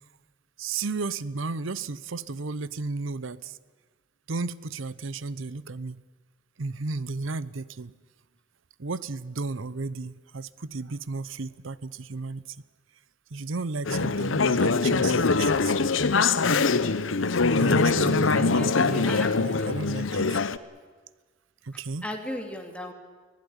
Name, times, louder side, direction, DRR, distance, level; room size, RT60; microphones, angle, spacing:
voice 1, 0.6-3.6 4.3-6.0 6.6-7.9 8.8-12.6 13.3-15.7 17.6-20.3 21.6-22.1, right 3 dB, 75° right, 18 dB, 0.8 m, -33 dB
Conversation / Chatter, 13.9-20.6, left 4 dB, 75° left, 0.9 m, -23 dB
voice 2, 18.3-20.4 22.0-22.9, left 1 dB, 5° left, 3 dB, 2.5 m, -37 dB
24.0 x 16.0 x 9.9 m, 1.4 s
head